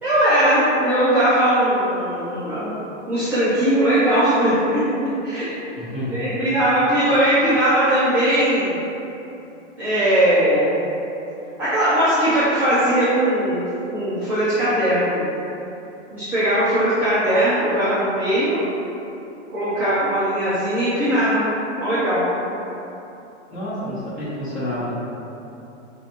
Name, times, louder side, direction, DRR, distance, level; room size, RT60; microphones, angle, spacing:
voice 1, 0.0-2.8 3.1-5.4 6.1-8.8 9.8-10.7 11.6-13.6 13.9-15.3 16.1-18.6 19.5-22.3, right 1 dB, 5° right, -15 dB, 0.4 m, -19 dB
voice 2, 5.7-6.3 23.5-25.0, equal, 20° left, -11 dB, 1.4 m, -29 dB
5.6 x 2.6 x 2.6 m, 2.9 s
hypercardioid pair, 150°, 36 cm